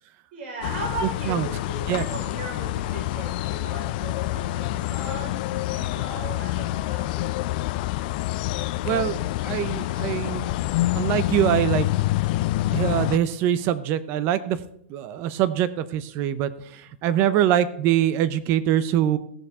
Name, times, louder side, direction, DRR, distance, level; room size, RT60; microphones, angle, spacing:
voice 1, 0.3-7.4 17.1-17.4, right 2 dB, 55° right, -3 dB, 4.7 m, -37 dB
sound 1, 0.6-13.2, left 16 dB, 45° left, 0.4 m, -27 dB
voice 2, 1.0-1.5 1.9-2.0 8.8-10.5 10.9-11.9 12.7-14.6 14.9-19.2, right 11 dB, 35° right, 14 dB, 0.7 m, -24 dB
16.5 x 7.1 x 3.6 m, 0.70 s
hypercardioid pair, 150°, 7 cm